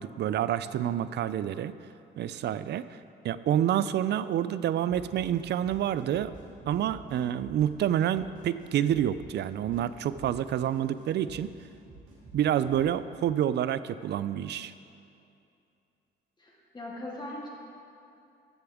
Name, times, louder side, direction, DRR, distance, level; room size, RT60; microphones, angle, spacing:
voice 1, 0.0-1.7 2.2-3.0 3.2-6.3 6.7-11.5 12.3-14.7, right 10 dB, 60° right, 15 dB, 0.4 m, -28 dB
sound 1, 4.9-12.8, right 2 dB, 80° right, 2.5 m, -50 dB
voice 2, 16.4-17.5, left 1 dB, 20° left, -4 dB, 2.3 m, -40 dB
14.5 x 6.9 x 3.6 m, 2.6 s
cardioid pair, 90°, 20 cm